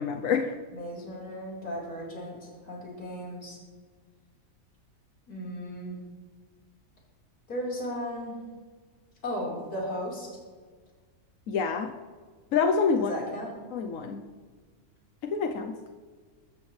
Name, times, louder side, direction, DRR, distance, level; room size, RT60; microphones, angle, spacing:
voice 1, 0.0-0.6 11.5-11.9 12.5-13.1 13.7-14.2 15.2-15.8, left 5 dB, 65° left, 5 dB, 1.2 m, -27 dB
voice 2, 0.7-3.6 5.3-6.0 7.5-8.4 9.2-10.3 13.1-13.5, equal, 80° left, -4 dB, 5.0 m, -35 dB
22.5 x 13.5 x 3.3 m, 1.5 s
omnidirectional pair, 1.6 m